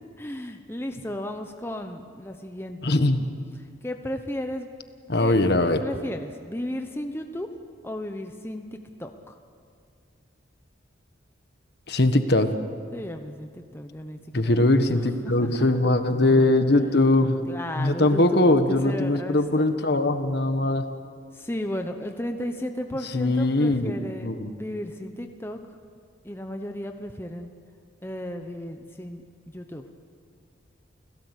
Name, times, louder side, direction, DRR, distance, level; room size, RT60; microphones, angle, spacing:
voice 1, 0.2-3.0 3.5-4.7 5.2-5.3 5.8-7.5 7.8-9.4 12.9-15.6 17.5-19.7 21.3-25.6 26.2-27.5 28.0-29.9, left 1 dB, 10° left, 5 dB, 0.9 m, -34 dB
voice 2, 2.8-3.2 5.1-5.8 11.9-12.5 14.3-17.4 17.8-20.8 23.1-23.9 24.2-24.5, left 2 dB, 55° left, 8 dB, 1.4 m, -21 dB
30.0 x 17.5 x 8.3 m, 2.3 s
head